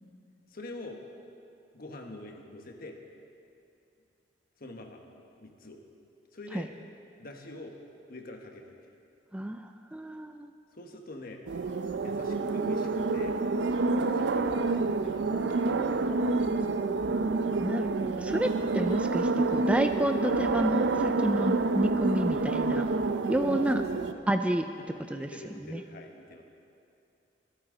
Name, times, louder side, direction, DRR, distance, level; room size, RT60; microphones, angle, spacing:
voice 1, 0.5-1.0 1.7-3.0 4.6-5.0 5.4-5.8 6.3-6.7 7.2-7.8 8.1-8.9 10.7-11.4 12.0-13.4 14.1-16.5 23.5-24.3 24.7-26.4, left 2 dB, 55° left, 3 dB, 1.3 m, -45 dB
voice 2, 9.9-10.5 17.6-22.9 23.3-23.8 24.3-24.6 25.1-25.3 25.7-25.8, right 1 dB, 5° right, 7 dB, 0.3 m, -29 dB
sound 1, 11.5-24.1, right 3 dB, 70° right, 0.5 m, -28 dB
23.5 x 8.8 x 3.9 m, 2.6 s
head